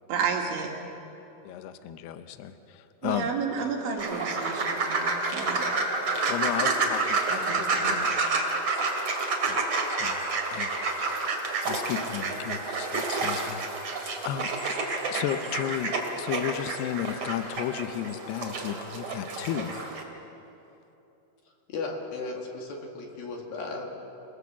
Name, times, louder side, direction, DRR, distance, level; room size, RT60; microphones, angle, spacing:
voice 1, 0.1-0.7 3.0-5.6 7.3-8.0, right 5 dB, 70° right, 1 dB, 4.3 m, -31 dB
voice 2, 1.4-3.3 6.3-8.2 9.5-9.6 9.9-10.8 11.1-19.9, left 11 dB, 90° left, 9 dB, 2.3 m, -34 dB
sound 1, 4.0-20.0, right 3 dB, 40° right, 2.2 m, -29 dB
voice 3, 21.7-24.1, left 3 dB, 55° left, 1 dB, 3.2 m, -35 dB
28.0 x 19.0 x 7.4 m, 3.0 s
omnidirectional pair, 5.9 m